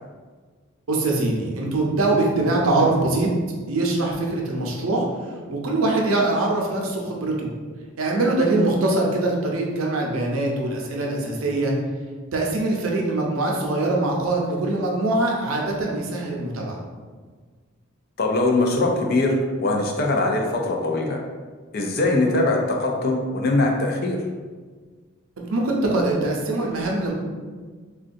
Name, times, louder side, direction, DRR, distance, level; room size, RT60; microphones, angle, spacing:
voice 1, 0.9-3.3 3.7-5.1 5.5-7.5 8.0-11.7 12.3-16.8 25.4-27.1, right 2 dB, 85° right, -1 dB, 0.6 m, -23 dB
voice 2, 18.2-21.2 21.7-24.2, left 2 dB, 45° left, 1 dB, 0.4 m, -22 dB
3.7 x 2.2 x 2.5 m, 1.5 s
head